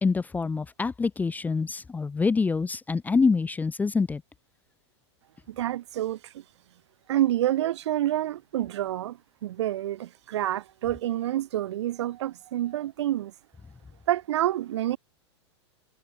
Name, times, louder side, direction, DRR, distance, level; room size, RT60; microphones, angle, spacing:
voice 1, 0.0-4.2, left 4 dB, 10° left, 0.5 m, -26 dB
voice 2, 5.5-6.4 7.1-13.3 14.1-15.0, right 13 dB, 70° right, 1.7 m, -28 dB
hypercardioid pair, 110°, 15 cm